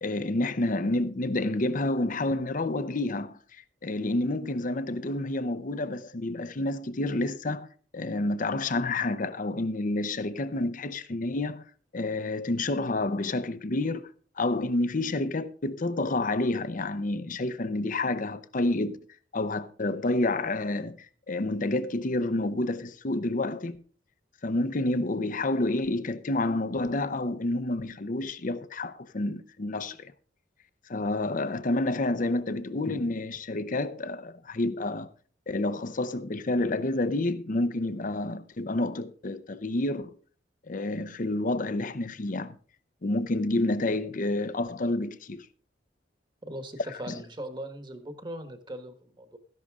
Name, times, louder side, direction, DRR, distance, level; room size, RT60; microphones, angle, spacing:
voice 1, 0.0-3.4 3.8-7.7 7.9-11.7 11.9-19.0 19.3-21.0 21.3-23.8 24.4-30.1 30.9-35.1 35.5-40.2 40.7-42.6 43.0-45.5 47.0-47.1, left 2 dB, 45° left, 0.7 m, -29 dB
voice 2, 46.5-49.4, right 1 dB, 25° right, 1.3 m, -39 dB
13.5 x 11.0 x 3.6 m
head